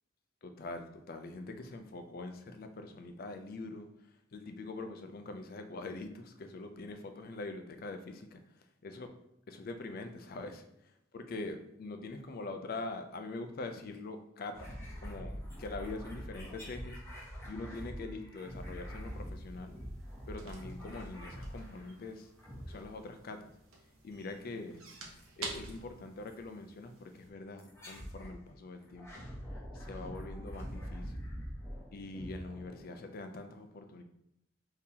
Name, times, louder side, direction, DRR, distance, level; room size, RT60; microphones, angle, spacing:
voice 1, 0.4-3.9 4.3-9.1 9.5-17.0 17.5-19.8 20.3-22.3 22.7-23.5 24.0-24.8 25.4-29.3 29.7-31.3 31.9-34.0, left 2 dB, 45° left, 7 dB, 0.4 m, -44 dB
sound 1, 14.5-22.0 22.4-23.2 24.9-25.3 26.3-26.4 27.6-28.4 28.8-33.2, equal, 15° left, 0.9 m, -45 dB
sound 2, 18.3-27.3, right 3 dB, 85° right, 0.7 m, -50 dB
3.8 x 2.8 x 2.8 m, 0.78 s
head